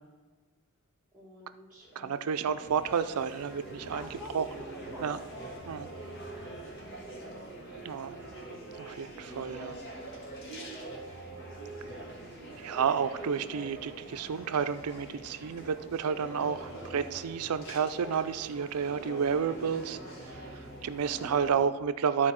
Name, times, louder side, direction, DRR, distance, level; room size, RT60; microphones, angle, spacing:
voice 1, 1.1-2.6 3.8-7.2, left 1 dB, 5° right, -8 dB, 1.5 m, -50 dB
sound 1, 1.8-21.6, right 2 dB, 55° left, 2.0 m, -44 dB
voice 2, 2.0-4.0 4.3-4.4 5.0-5.2 5.7-5.9 7.8-8.2 8.8-9.8 12.6-20.0 20.5-22.3, right 6 dB, 85° right, 12 dB, 0.4 m, -31 dB
13.0 x 4.4 x 4.3 m, 1.4 s
head